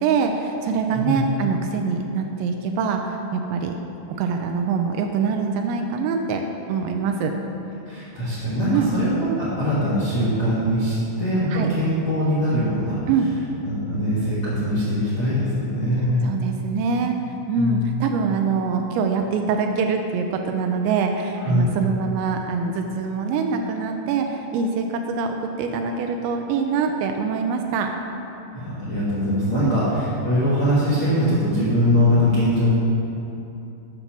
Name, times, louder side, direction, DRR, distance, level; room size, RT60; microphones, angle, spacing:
voice 1, 0.0-3.7 4.1-6.4 6.7-7.3 8.7-8.9 11.5-11.7 13.1-13.3 16.2-17.2 17.5-27.9 29.6-29.8, right 5 dB, 80° right, 4 dB, 2.7 m, -24 dB
voice 2, 7.8-13.1 13.6-16.2 17.5-18.1 21.4-21.7 28.5-32.7, equal, 55° left, -10 dB, 1.6 m, -22 dB
8.4 x 6.7 x 5.9 m, 2.8 s
omnidirectional pair, 5.4 m